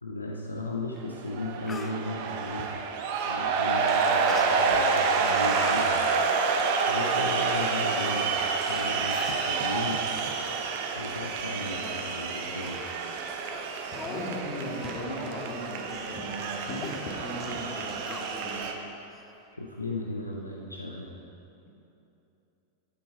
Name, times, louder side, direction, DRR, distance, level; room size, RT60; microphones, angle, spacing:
voice 1, 0.0-2.7 3.3-6.1 6.9-8.4 8.7-10.0 10.9-12.8 19.5-21.2, left 1 dB, 80° left, 0 dB, 0.7 m, -35 dB
Speech, 1.0-1.1 1.4-2.0 4.3-4.8 5.2-5.7 6.1-6.2 6.8-6.9 7.1-7.2 8.0-8.1 8.7-8.8 9.1-9.5 10.2-10.4 10.8-11.5 11.8-12.0 12.4-12.5 13.0-13.2 13.5-13.6 13.9-14.3 14.6-14.8 15.2-15.4 15.7-15.9 16.2-16.4 16.8-17.0 18.1-18.7 19.1-19.2, left 5 dB, 20° left, 0.5 m, -42 dB
sound 1, 1.1-18.7, right 5 dB, 50° right, 0.9 m, -28 dB
sound 2, 3.9-4.2 4.8-6.2 6.6-6.9 7.5-9.6 10.0-10.6 11.0-11.5 11.8-14.5 14.8-16.3 16.7-18.7, right 2 dB, 15° right, 1.1 m, -47 dB
voice 2, 13.9-18.7, left 1 dB, 40° left, -2 dB, 2.0 m, -37 dB
12.0 x 8.7 x 3.6 m, 2.9 s
figure-of-eight pair, 90°, 0 cm